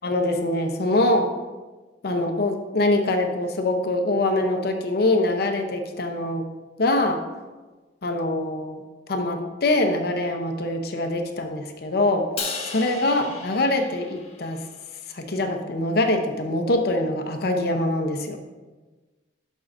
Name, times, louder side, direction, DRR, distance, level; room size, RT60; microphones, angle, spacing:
voice 1, 0.0-1.3 2.0-6.5 6.8-7.2 8.0-8.8 9.1-12.2 12.7-14.6 15.1-18.4, left 2 dB, 60° left, 5 dB, 0.7 m, -24 dB
Crash cymbal, 12.4-14.8, left 4 dB, 35° left, 1.2 m, -35 dB
12.0 x 5.4 x 2.6 m, 1.3 s
head